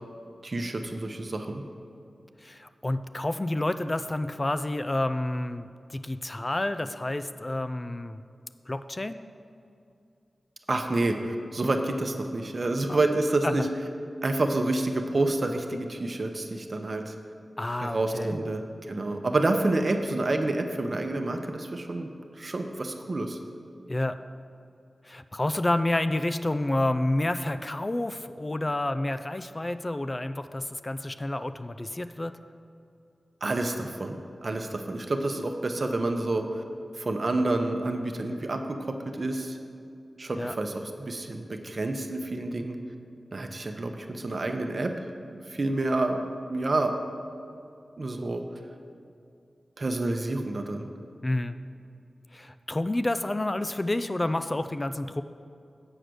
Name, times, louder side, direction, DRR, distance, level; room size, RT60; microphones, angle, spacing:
voice 1, 0.4-1.6 10.7-13.7 14.2-17.1 17.8-22.1 22.4-23.4 33.4-34.2 34.4-36.6 37.0-39.6 40.2-42.8 43.3-44.9 45.5-46.2 46.5-46.9 48.0-48.4 49.8-50.9, right 2 dB, 55° right, 5 dB, 0.7 m, -28 dB
voice 2, 2.4-8.2 8.7-9.2 12.9-13.0 13.4-13.6 17.6-18.4 23.9-24.2 25.0-32.3 40.4-40.5 51.2-51.6 52.3-55.2, left 1 dB, 30° left, 10 dB, 0.3 m, -29 dB
8.0 x 4.9 x 6.1 m, 2.5 s
cardioid pair, 50°, 0 cm